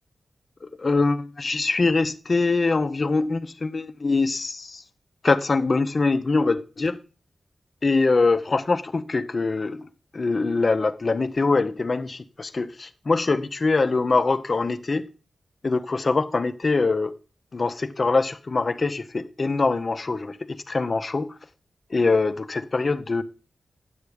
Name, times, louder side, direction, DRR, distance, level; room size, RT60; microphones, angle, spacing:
voice 1, 0.6-4.8 5.2-7.0 7.8-9.9 10.1-15.1 15.6-17.1 17.5-21.3 21.9-23.2, left 3 dB, 50° left, 0.8 m, -23 dB
9.6 x 6.7 x 4.9 m
cardioid pair, 55°, 0 cm